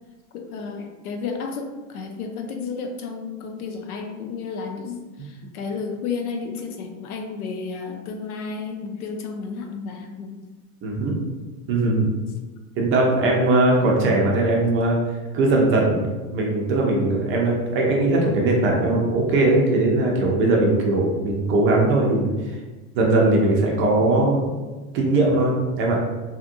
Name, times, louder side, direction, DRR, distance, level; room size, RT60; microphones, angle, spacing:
voice 1, 0.3-10.5, left 5 dB, 85° left, 4 dB, 0.6 m, -32 dB
voice 2, 10.8-11.1 11.7-12.1 12.7-15.0 15.3-22.6 22.9-24.5 24.9-26.0, right 2 dB, 30° right, -1 dB, 0.5 m, -20 dB
2.8 x 2.5 x 2.5 m, 1.2 s
supercardioid pair, 120°, 43 cm